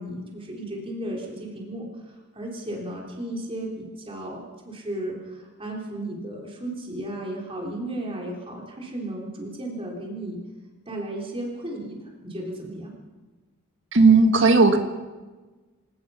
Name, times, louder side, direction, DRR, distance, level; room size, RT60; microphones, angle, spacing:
voice 1, 0.0-10.4 10.9-12.9, right 1 dB, 25° right, -1 dB, 3.9 m, -34 dB
voice 2, 13.9-14.8, right 3 dB, 60° right, 6 dB, 1.7 m, -15 dB
26.0 x 18.5 x 5.8 m, 1.3 s
head